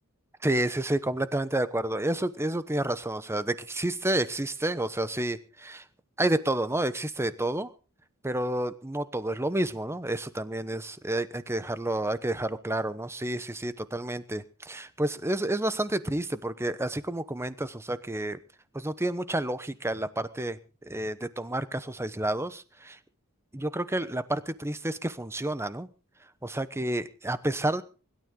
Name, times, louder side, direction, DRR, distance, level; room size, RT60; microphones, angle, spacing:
voice 1, 0.4-5.8 6.2-7.7 8.2-18.4 18.7-23.0 23.5-25.9 26.4-27.8, right 1 dB, 10° right, 14 dB, 1.0 m, -30 dB
24.0 x 12.5 x 3.8 m, 0.36 s
head